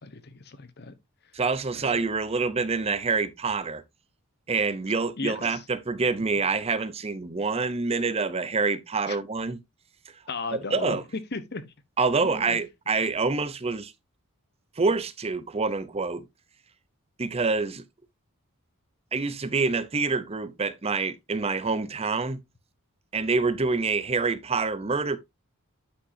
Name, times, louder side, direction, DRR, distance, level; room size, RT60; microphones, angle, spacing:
voice 1, 0.0-0.9 1.7-2.0 5.2-5.6 9.1-9.2 10.3-11.0 11.3-11.7 12.2-12.6, left 3 dB, 50° left, 1.0 m, -36 dB
voice 2, 1.3-3.8 4.5-9.6 10.5-11.0 12.0-13.9 14.8-16.3 17.2-17.8 19.1-22.4 23.1-25.2, right 4 dB, 30° right, 0.6 m, -26 dB
10.0 x 5.5 x 2.7 m
head